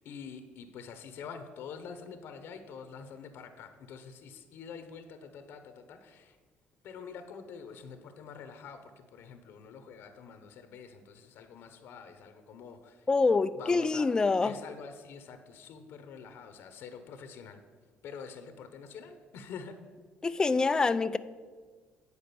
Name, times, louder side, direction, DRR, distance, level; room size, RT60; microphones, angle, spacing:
voice 1, 0.0-6.4 6.8-13.1 13.6-14.1 14.4-17.6 18.0-19.8, left 6 dB, 65° left, 8 dB, 0.9 m, -46 dB
voice 2, 13.1-14.5 20.2-21.2, left 4 dB, 20° left, 14 dB, 0.3 m, -26 dB
9.7 x 4.8 x 6.8 m, 1.5 s
cardioid pair, 135°, 4 cm